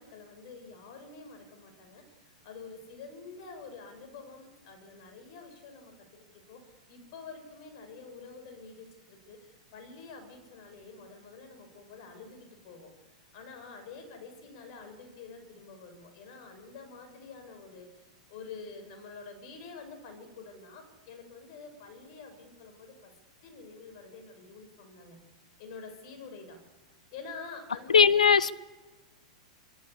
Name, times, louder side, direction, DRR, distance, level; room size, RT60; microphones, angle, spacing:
voice 1, 0.0-12.9 13.3-23.1 23.4-25.2 25.6-26.6 27.1-28.0, left 4 dB, 55° left, 7.6 m, -47 dB
voice 2, 27.9-28.5, left 6 dB, 85° left, 0.9 m, -19 dB
26.0 x 22.0 x 8.7 m
hypercardioid pair, 105°, 4 cm